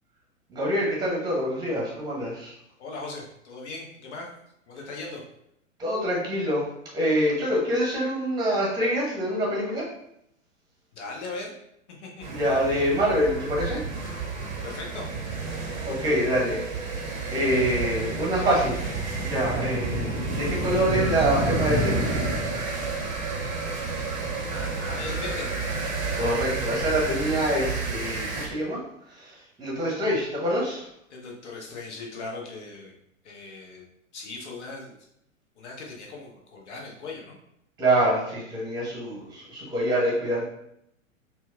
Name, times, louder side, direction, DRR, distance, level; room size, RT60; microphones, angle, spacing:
voice 1, 0.5-2.5 5.8-6.6 6.9-9.9 12.3-13.8 15.8-16.6 17.3-18.8 19.2-22.1 26.1-28.8 29.1-30.9 37.8-40.4, equal, 10° right, -3 dB, 0.9 m, -25 dB
voice 2, 2.8-4.3 4.7-5.2 10.9-11.5 12.0-12.3 14.6-15.1 24.5-25.5 31.1-32.9 33.2-33.9 34.1-35.0 35.6-37.4, left 3 dB, 60° left, 0 dB, 1.0 m, -38 dB
sound 1, 12.2-28.5, right 4 dB, 85° right, 0.9 m, -32 dB
sound 2, 19.1-22.9, right 1 dB, 25° left, 1.5 m, -28 dB
4.2 x 2.3 x 2.3 m, 0.77 s
figure-of-eight pair, 105°, 40 cm